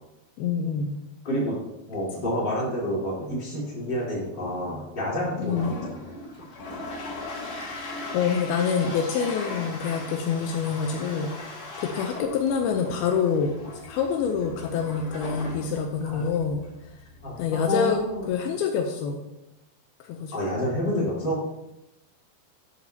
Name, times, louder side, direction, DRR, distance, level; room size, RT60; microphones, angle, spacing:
voice 1, 0.4-1.0 5.4-5.7 8.1-11.3 11.8-13.5 13.8-16.6 17.4-18.0 18.3-19.2 20.0-20.3, left 6 dB, 80° left, 4 dB, 2.5 m, -26 dB
voice 2, 1.2-1.6 1.9-6.0 16.0-16.2 17.2-18.3 20.3-21.4, equal, 30° left, -7 dB, 3.8 m, -29 dB
Toilet flush, 5.3-18.4, left 2 dB, 50° left, 4.0 m, -39 dB
11.0 x 9.0 x 2.8 m, 0.91 s
omnidirectional pair, 4.6 m